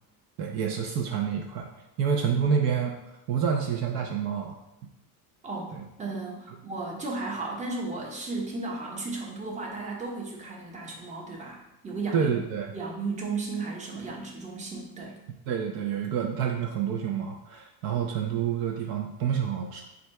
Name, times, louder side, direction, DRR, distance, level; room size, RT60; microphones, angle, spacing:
voice 1, 0.4-1.7 2.0-2.9 3.3-4.6 5.7-5.8 12.1-12.7 15.5-19.8, right 7 dB, 55° right, 2 dB, 0.5 m, -28 dB
voice 2, 5.4-12.4 12.7-15.2, right 3 dB, 15° right, -1 dB, 0.7 m, -35 dB
3.8 x 2.3 x 4.5 m, 0.90 s
cardioid pair, 135°, 43 cm